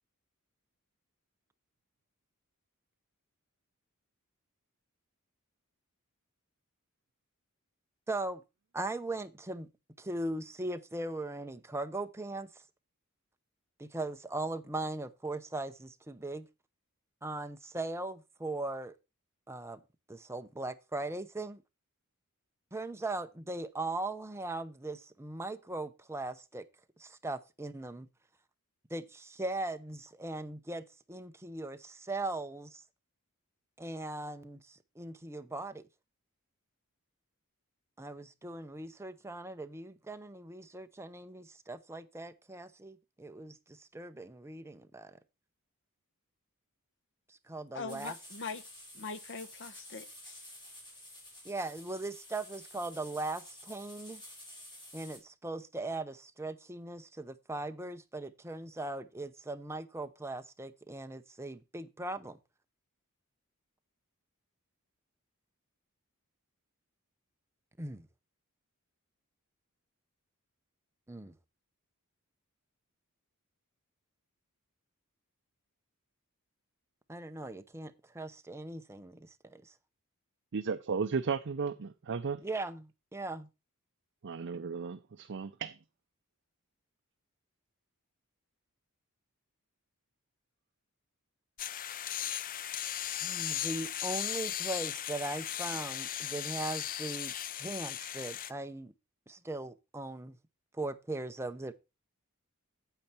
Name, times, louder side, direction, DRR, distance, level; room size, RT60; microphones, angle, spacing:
voice 1, 8.1-8.4 8.7-9.7 10.0-12.6 13.8-16.5 17.2-18.9 19.5-19.8 20.1-21.6 22.7-26.7 27.0-28.1 28.9-32.8 33.8-35.8 38.0-45.2 47.3-48.2 51.4-54.2 54.9-62.4 67.8-68.1 71.1-71.3 77.1-79.7 82.4-83.5 93.2-97.3 97.6-98.9 99.3-100.4 100.7-101.7, right 2 dB, 10° right, 0.7 m, -39 dB
voice 2, 47.7-48.7 48.9-50.4, left 4 dB, 55° left, 1.0 m, -42 dB
sound 1, 47.9-55.2, left 1 dB, 20° left, 4.4 m, -51 dB
voice 3, 80.5-82.4 84.2-85.8, right 5 dB, 55° right, 0.5 m, -34 dB
sound 2, 91.6-98.5, left 11 dB, 40° left, 0.4 m, -37 dB
9.0 x 8.0 x 4.3 m
head